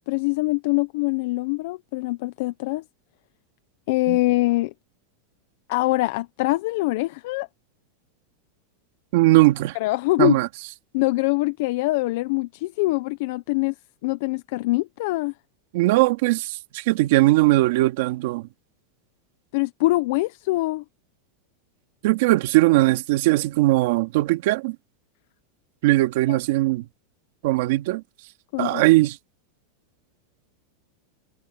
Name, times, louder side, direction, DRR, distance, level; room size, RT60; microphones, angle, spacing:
voice 1, 0.1-2.8 3.9-4.7 5.7-7.5 9.8-10.4 10.9-13.7 14.0-15.3 19.5-20.8 26.3-26.4 28.5-28.8, left 20 dB, 60° left, 0.8 m, -23 dB
voice 2, 9.1-9.8 10.2-10.5 15.7-18.5 22.0-24.8 25.8-26.8 27.4-28.0 28.6-29.2, right 19 dB, 65° right, 2.2 m, -19 dB
supercardioid pair, 145°, 0 cm